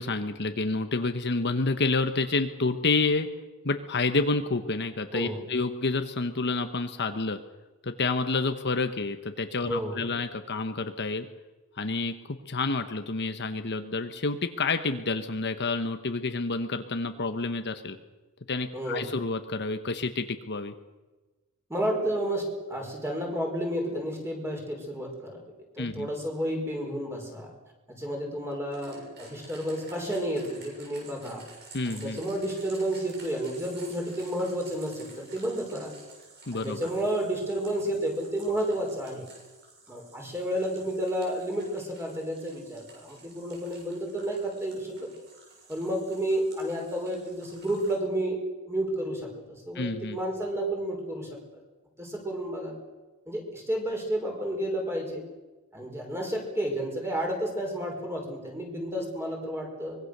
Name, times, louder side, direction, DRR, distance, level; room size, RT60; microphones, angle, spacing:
voice 1, 0.0-3.3 3.6-7.4 7.8-11.3 11.8-18.0 18.5-20.7 25.8-26.1 31.7-32.2 36.5-36.8 49.7-50.2, left 3 dB, 50° left, 8 dB, 1.1 m, -29 dB
voice 2, 5.1-5.5 9.6-10.1 18.7-19.1 21.7-27.5 28.0-31.4 31.9-35.9 36.5-39.3 39.9-44.9 45.7-48.4 48.7-51.6 52.0-52.7 53.3-55.2 55.7-60.0, right 1 dB, 10° right, 0 dB, 5.4 m, -31 dB
sound 1, 28.7-48.0, right 3 dB, 50° right, 7.4 m, -51 dB
24.5 x 21.5 x 6.7 m, 1.2 s
head